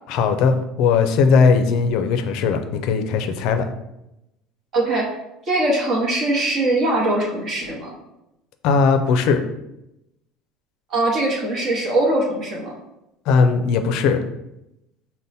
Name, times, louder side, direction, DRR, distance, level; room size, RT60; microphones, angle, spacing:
voice 1, 0.1-3.7 8.6-9.4 13.3-14.2, left 5 dB, 60° left, 7 dB, 0.5 m, -18 dB
voice 2, 4.7-5.2 5.5-7.9 10.9-12.7, right 2 dB, 35° right, -3 dB, 0.9 m, -21 dB
5.3 x 2.1 x 4.1 m, 0.88 s
cardioid pair, 155°, 0 cm